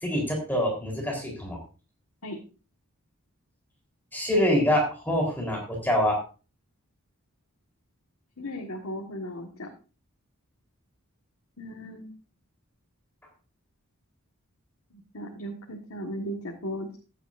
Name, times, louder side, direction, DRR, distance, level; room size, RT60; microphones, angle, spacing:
voice 1, 0.0-1.6 4.1-6.2, left 1 dB, 10° left, 0 dB, 3.7 m, -25 dB
voice 2, 8.4-9.7 11.6-12.1 14.9-17.0, equal, 80° left, 1 dB, 1.6 m, -36 dB
15.0 x 9.3 x 2.6 m, 0.34 s
head